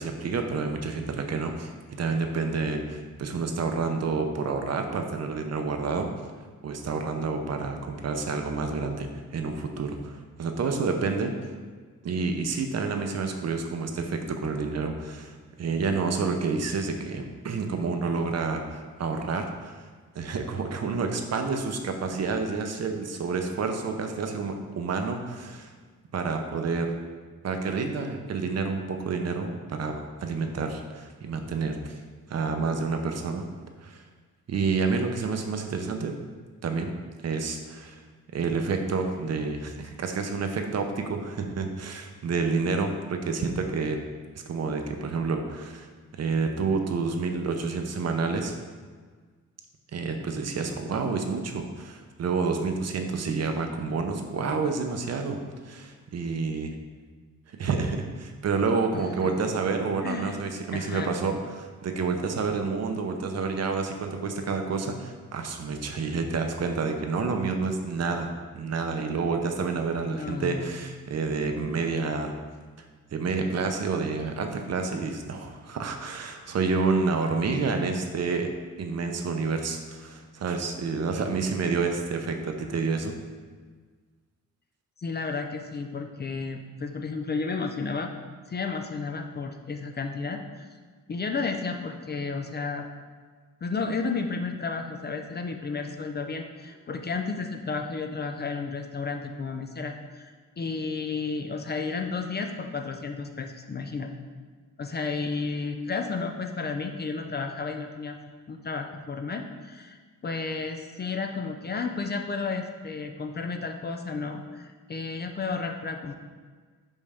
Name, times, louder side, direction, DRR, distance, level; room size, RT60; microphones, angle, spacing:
voice 1, 0.0-1.7 2.0-6.1 6.6-11.3 12.0-19.7 20.1-25.7 26.1-26.9 27.4-29.9 30.2-32.0 32.3-33.4 33.8-34.0 34.5-36.1 36.6-36.9 37.2-38.0 38.3-44.0 44.5-45.9 46.2-48.5 49.9-55.4 55.6-56.7 57.5-68.3 68.5-72.4 73.1-78.5 78.8-83.2, right 4 dB, 55° right, 5 dB, 0.6 m, -29 dB
voice 2, 58.9-59.5 60.0-60.4 60.7-61.1 70.1-70.7 85.0-88.1 88.5-90.7 91.1-92.9 93.6-104.1 104.8-108.2 108.5-116.1, left 4 dB, 35° left, 5 dB, 0.4 m, -32 dB
5.3 x 5.3 x 3.5 m, 1.5 s
wide cardioid pair, 145°, 31 cm